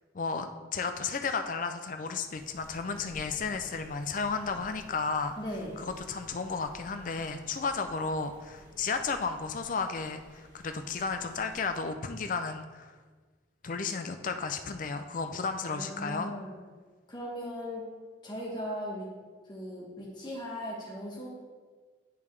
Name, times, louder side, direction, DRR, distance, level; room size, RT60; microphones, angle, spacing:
voice 1, 0.1-5.4 5.8-12.9 13.6-16.3, left 4 dB, 45° left, 7 dB, 0.4 m, -33 dB
sound 1, 2.3-11.7, equal, 25° right, 1.4 m, -54 dB
voice 2, 5.4-5.8 15.7-16.5 17.1-17.9 18.2-19.1 19.5-21.3, equal, 25° left, -4 dB, 1.1 m, -38 dB
10.0 x 3.5 x 3.3 m, 1.4 s
head